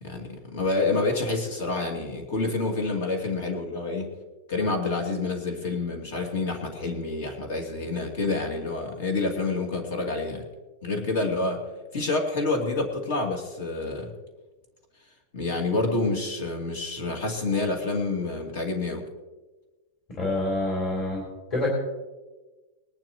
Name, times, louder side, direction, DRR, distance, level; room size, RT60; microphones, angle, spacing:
voice 1, 0.0-4.1 4.5-10.5 10.8-11.6 11.9-14.1 15.3-19.1, left 3 dB, 55° left, 2 dB, 2.5 m, -28 dB
voice 2, 20.2-21.2 21.5-21.7, left 2 dB, 30° left, -3 dB, 3.4 m, -26 dB
21.0 x 11.5 x 3.0 m, 1.2 s
supercardioid pair, 170°, 0 cm